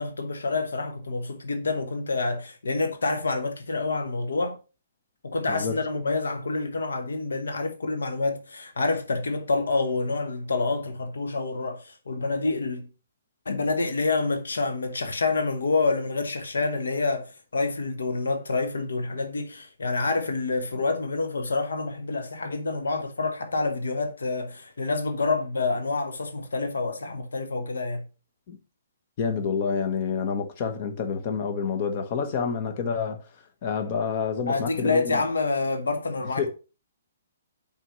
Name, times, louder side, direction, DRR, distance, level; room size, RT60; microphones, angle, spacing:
voice 1, 0.0-4.6 5.2-12.9 13.4-28.0 34.5-36.5, left 3 dB, 80° left, 1.1 m, -27 dB
voice 2, 5.5-5.8 28.5-28.6 29.2-33.2 33.6-35.2 36.4-36.5, left 6 dB, 40° left, 1.3 m, -28 dB
5.7 x 4.4 x 5.5 m
hypercardioid pair, 140°, 0 cm